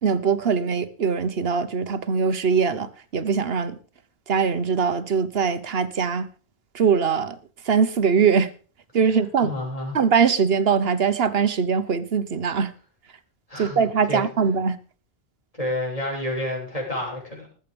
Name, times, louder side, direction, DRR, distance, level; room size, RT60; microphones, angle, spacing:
voice 1, 0.0-3.8 4.3-6.3 6.7-7.4 7.6-8.5 8.9-9.5 9.9-12.7 13.6-14.8, right 6 dB, 70° right, 1.3 m, -22 dB
voice 2, 9.4-10.0 13.5-13.8 14.1-14.2 15.6-17.5, left 1 dB, 35° left, 7.5 m, -29 dB
19.5 x 8.1 x 5.2 m
omnidirectional pair, 1.1 m